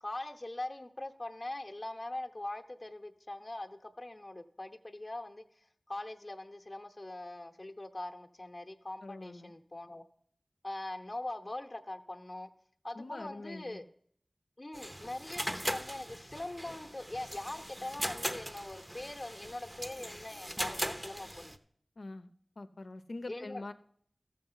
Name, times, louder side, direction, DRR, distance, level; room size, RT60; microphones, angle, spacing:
voice 1, 0.0-5.4 5.9-10.0 10.6-12.5 12.8-13.9 14.6-21.5 23.3-23.7, left 2 dB, 35° left, 4 dB, 0.8 m, -42 dB
voice 2, 9.0-9.5 12.9-13.8 22.0-22.3 22.6-23.7, left 2 dB, 85° left, 9 dB, 0.6 m, -44 dB
sound 1, 14.7-21.6, equal, 15° right, 0.8 m, -39 dB
13.5 x 6.6 x 5.6 m, 0.62 s
wide cardioid pair, 40°, 0 cm